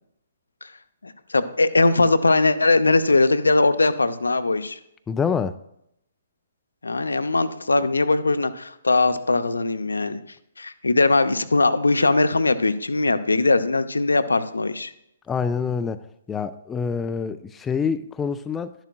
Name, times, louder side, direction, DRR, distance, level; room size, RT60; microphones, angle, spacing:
voice 1, 1.0-4.8 6.8-10.2 10.6-14.9, left 3 dB, 75° left, 11 dB, 0.6 m, -20 dB
voice 2, 5.1-5.6 15.3-16.0 16.3-18.7, left 6 dB, 10° left, 10 dB, 0.3 m, -26 dB
11.5 x 10.5 x 2.3 m, 0.78 s
figure-of-eight pair, 130°, 0 cm